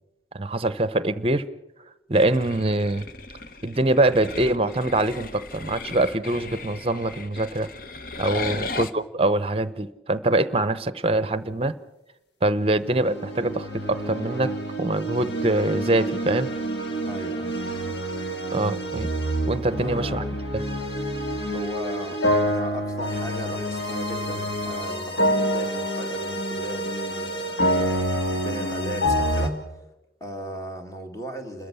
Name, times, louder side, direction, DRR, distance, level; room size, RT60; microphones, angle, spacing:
voice 1, 0.3-1.4 2.1-3.1 3.6-7.7 8.2-11.7 12.4-14.5 14.8-16.5 18.5-19.1 19.5-20.2 20.5-20.6, right 2 dB, 30° right, 15 dB, 0.7 m, -24 dB
sound 1, 2.1-8.9, left 3 dB, 50° left, 0.9 m, -36 dB
sound 2, 12.7-29.5, equal, 75° left, 2.5 m, -27 dB
voice 2, 17.0-17.6 19.8-20.2 21.5-27.8 28.4-29.8 30.2-31.7, right 1 dB, 20° left, 4 dB, 2.1 m, -37 dB
30.0 x 13.5 x 7.0 m, 0.98 s
head